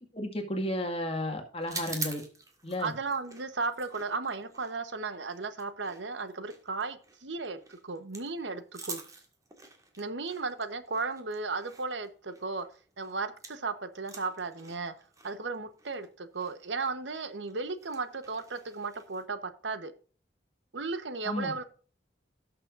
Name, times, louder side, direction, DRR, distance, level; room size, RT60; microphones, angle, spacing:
voice 1, 0.1-2.2 2.6-2.9 21.2-21.6, left 1 dB, 30° left, 2.0 m, -33 dB
sound 1, 1.6-13.7 13.9-19.2, right 4 dB, 20° right, 1.8 m, -46 dB
voice 2, 2.8-9.0 10.0-12.7 13.0-14.9 15.2-19.9 20.7-21.6, right 4 dB, 75° right, 1.1 m, -35 dB
17.5 x 6.7 x 2.6 m
head